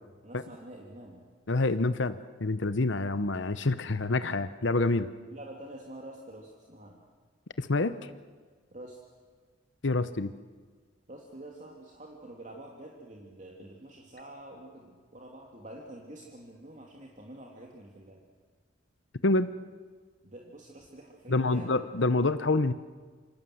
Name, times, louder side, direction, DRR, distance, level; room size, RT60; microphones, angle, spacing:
voice 1, 0.2-1.2 5.3-7.0 8.7-9.0 11.1-18.2 20.2-21.7, right 1 dB, 40° right, -1 dB, 2.8 m, -47 dB
voice 2, 1.5-5.1 7.6-8.0 9.8-10.3 19.2-19.5 21.3-22.7, left 2 dB, 70° left, 12 dB, 0.9 m, -27 dB
28.0 x 26.0 x 7.9 m, 1.5 s
head